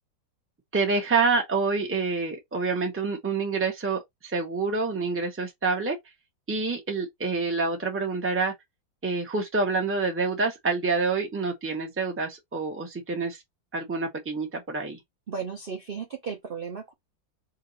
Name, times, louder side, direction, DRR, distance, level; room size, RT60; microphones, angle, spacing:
voice 1, 0.7-6.0 6.5-8.5 9.0-13.4 13.7-15.0, right 4 dB, 10° right, 0.6 m, -27 dB
voice 2, 15.3-16.9, right 6 dB, 50° right, 0.6 m, -35 dB
2.9 x 2.7 x 4.0 m
omnidirectional pair, 2.0 m